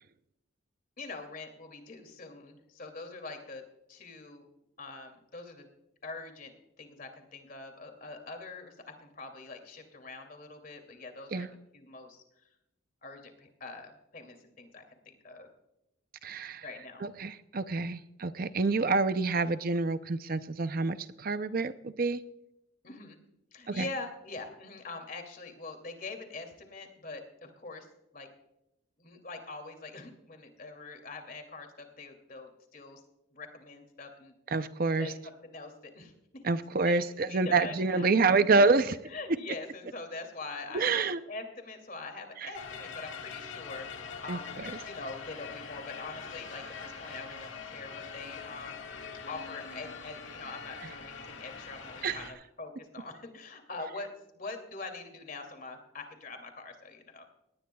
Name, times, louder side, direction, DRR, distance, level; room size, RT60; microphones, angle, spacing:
voice 1, 1.0-3.6 3.9-4.4 4.8-5.7 6.0-6.5 6.8-11.5 11.7-12.2 13.0-15.5 16.6-17.1 22.8-23.2 23.5-27.9 28.1-28.3 29.0-33.0 33.3-34.3 35.0-36.1 36.8-37.0 37.3-38.8 39.1-48.9 49.2-57.3, left 3 dB, 45° left, 5 dB, 2.6 m, -44 dB
voice 2, 16.2-16.6 17.0-22.2 23.7-23.9 34.5-35.1 36.4-39.0 40.7-41.2 42.4-42.5 44.3-44.7 52.0-52.2, right 3 dB, 45° right, 12 dB, 0.5 m, -27 dB
sound 1, 42.5-52.3, left 5 dB, 75° left, 1.8 m, -43 dB
20.0 x 18.5 x 2.3 m, 0.86 s
head